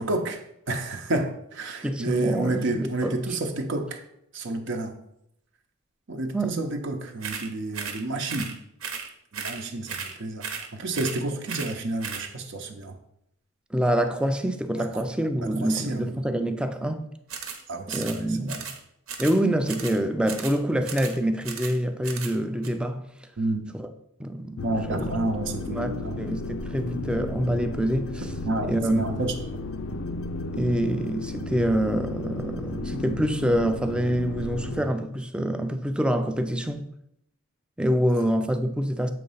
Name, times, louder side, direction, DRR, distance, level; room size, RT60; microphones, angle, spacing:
voice 1, 0.0-4.0 4.3-5.0 6.1-8.5 9.3-12.9 14.8-15.0 15.4-16.2 17.7-18.6 23.4-23.7 24.6-26.1 28.4-29.3, right 2 dB, 60° right, 0.7 m, -30 dB
voice 2, 1.8-3.1 6.3-6.5 13.7-17.0 17.9-18.6 19.2-23.0 23.7-23.9 24.2-25.1 25.7-28.3 28.6-29.1 30.5-36.9 37.8-39.1, right 1 dB, 5° right, 0.4 m, -26 dB
sound 1, 7.2-7.5 7.7-8.0 8.3-8.5 8.8-9.1 9.3-9.6 9.9-10.1 10.4-10.7 10.9-11.2 11.5-11.7 12.0-12.3 17.3-17.6 17.9-18.2 18.5-18.8 19.1-19.4 19.7-20.0 20.3-20.6 20.9-21.2 21.4-21.8 22.0-22.4 22.6-22.7, right 6 dB, 75° right, 1.0 m, -35 dB
sound 2, 24.6-34.8, left 2 dB, 70° left, 0.5 m, -34 dB
7.5 x 3.1 x 5.5 m
head